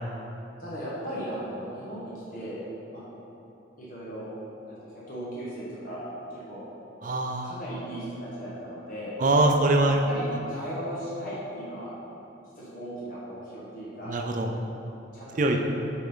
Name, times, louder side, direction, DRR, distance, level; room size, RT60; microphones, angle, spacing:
voice 1, 0.6-2.6 2.9-3.0 3.8-4.3 4.6-6.6 7.4-9.2 10.1-11.9 12.5-14.2 15.1-15.6, equal, 45° left, -8 dB, 1.3 m, -37 dB
voice 2, 7.0-7.6 9.2-10.0 14.1-14.5 15.4-15.6, right 2 dB, 45° right, 3 dB, 0.5 m, -23 dB
7.1 x 4.4 x 3.8 m, 2.9 s
head